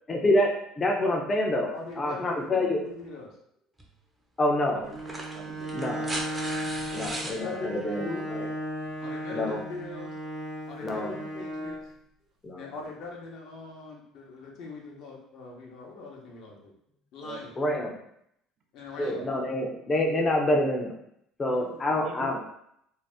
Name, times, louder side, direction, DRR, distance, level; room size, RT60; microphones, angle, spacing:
voice 1, 0.1-2.8 4.4-4.8 5.7-6.1 6.9-8.5 9.3-9.6 10.8-11.1 12.4-12.7 17.6-18.0 19.0-20.9 21.4-22.4, left 1 dB, 25° left, 1 dB, 0.6 m, -27 dB
voice 2, 1.7-3.4 7.3-8.2 9.0-10.1 10.7-11.8 12.6-16.7 17.1-17.5 18.7-19.2 21.4-22.0, left 3 dB, 65° left, -1 dB, 0.8 m, -41 dB
sound 1, 3.8-3.9 4.9-7.4 8.9-9.0, right 1 dB, 15° right, 0.7 m, -36 dB
Bowed string instrument, 4.8-11.9, equal, 85° right, 1.0 m, -35 dB
voice 3, 5.3-5.7 6.0-6.4 6.9-7.2 7.6-8.1 17.2-17.5 19.0-19.3 21.9-22.4, right 5 dB, 55° right, 3 dB, 0.5 m, -44 dB
2.7 x 2.0 x 3.4 m, 0.73 s
supercardioid pair, 100°, 0 cm